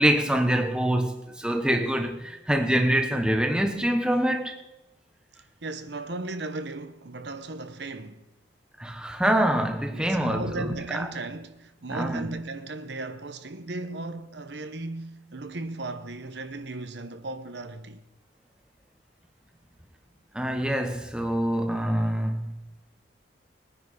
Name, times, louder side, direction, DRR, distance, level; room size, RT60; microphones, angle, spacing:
voice 1, 0.0-4.6 8.8-11.1 11.9-12.3 20.3-22.6, right 1 dB, 5° right, 1.1 m, -25 dB
voice 2, 5.6-8.2 9.9-18.0, right 2 dB, 60° right, 0.9 m, -36 dB
19.5 x 9.9 x 4.9 m
head